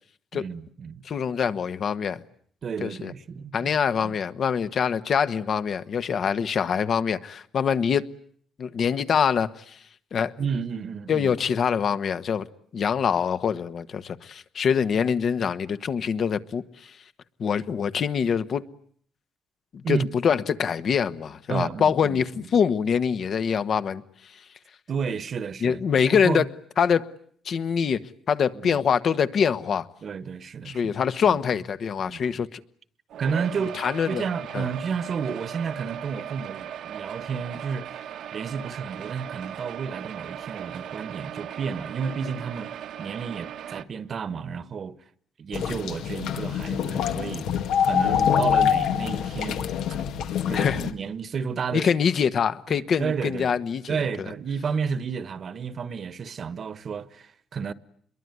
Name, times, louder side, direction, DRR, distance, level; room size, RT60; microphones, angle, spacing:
voice 1, 0.3-1.1 2.6-3.7 4.0-4.2 10.4-11.3 19.8-20.1 21.5-22.5 24.9-26.5 28.5-28.8 30.0-30.9 31.2-31.4 32.0-32.4 33.2-38.0 38.3-42.7 43.0-45.0 45.4-47.5 47.8-49.7 50.5-51.9 52.7-53.5 53.9-57.7, right 6 dB, 50° right, 1.4 m, -31 dB
voice 2, 1.0-2.2 2.8-3.1 3.5-8.1 8.6-9.8 10.1-10.3 11.1-12.5 12.7-16.9 17.4-18.7 19.9-24.0 25.6-26.4 26.8-27.1 27.4-28.0 28.3-29.9 30.6-32.6 33.7-34.2 34.5-34.7 50.5-50.9 51.7-54.0, left 7 dB, 55° left, 1.3 m, -24 dB
sound 1, 33.1-43.8, right 10 dB, 75° right, 1.4 m, -38 dB
sound 2, 45.5-50.9, left 8 dB, 85° left, 2.0 m, -25 dB
27.0 x 22.5 x 9.5 m
cardioid pair, 90°, 0 cm